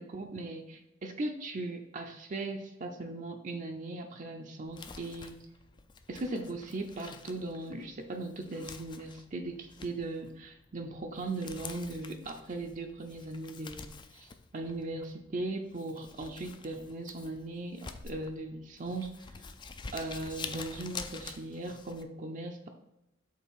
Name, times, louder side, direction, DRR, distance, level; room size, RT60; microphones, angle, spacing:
voice 1, 0.0-5.4 6.1-19.3 19.9-22.7, right 2 dB, 40° right, 3 dB, 0.5 m, -38 dB
Crumpling crinkling, 4.6-22.0, left 5 dB, 25° left, 0.4 m, -48 dB
5.6 x 3.9 x 4.4 m, 0.91 s
head